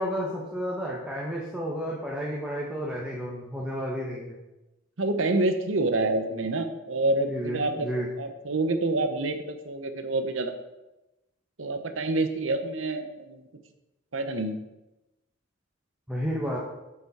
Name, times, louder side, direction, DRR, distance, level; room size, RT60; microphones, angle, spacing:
voice 1, 0.0-4.3 7.3-8.1 16.1-16.6, equal, 5° right, -4 dB, 1.2 m, -31 dB
voice 2, 5.0-7.9 8.2-10.5 11.6-13.5 14.1-14.6, right 2 dB, 70° right, 7 dB, 0.9 m, -27 dB
8.0 x 7.0 x 4.3 m, 0.98 s
head